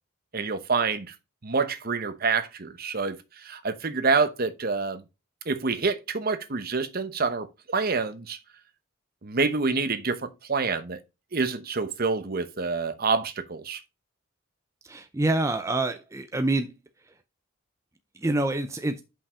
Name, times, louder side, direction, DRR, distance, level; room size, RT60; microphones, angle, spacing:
voice 1, 0.3-1.1 1.4-5.0 5.5-8.4 9.2-11.0 11.3-13.8, right 4 dB, 45° right, 0.9 m, -27 dB
voice 2, 14.8-16.7 18.2-19.0, right 2 dB, 15° right, 0.5 m, -26 dB
5.6 x 5.4 x 4.9 m
head